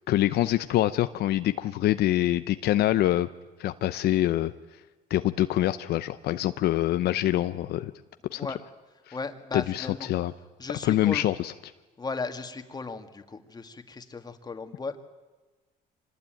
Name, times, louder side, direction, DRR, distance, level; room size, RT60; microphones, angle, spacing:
voice 1, 0.1-3.3 3.6-4.5 5.1-7.9 8.3-8.4 9.1-9.2 9.5-10.3 10.8-11.5, left 14 dB, 70° left, 11 dB, 0.8 m, -25 dB
voice 2, 9.1-10.1 10.6-11.2 12.0-15.0, left 4 dB, 25° left, 7 dB, 2.1 m, -36 dB
25.5 x 19.5 x 9.2 m, 1.2 s
cardioid pair, 110°, 17 cm